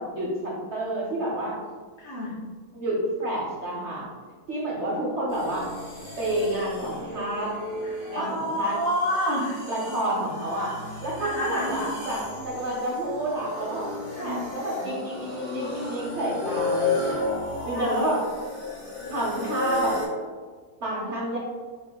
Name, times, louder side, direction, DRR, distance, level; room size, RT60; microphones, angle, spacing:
voice 1, 0.0-1.6 2.7-4.1 4.5-5.7 6.2-7.5 8.1-8.8 9.7-10.7 11.0-13.9 14.2-17.2 17.6-18.2 19.1-20.0 20.8-21.4, right 1 dB, 55° right, -4 dB, 0.9 m, -29 dB
voice 2, 2.0-2.3 8.1-9.6 11.2-11.9 14.1-14.4 17.7-17.9, equal, 65° left, -7 dB, 2.1 m, -28 dB
sound 1, 5.3-20.1, left 2 dB, 80° left, 2.2 m, -33 dB
4.9 x 3.5 x 2.2 m, 1.5 s
omnidirectional pair, 1.7 m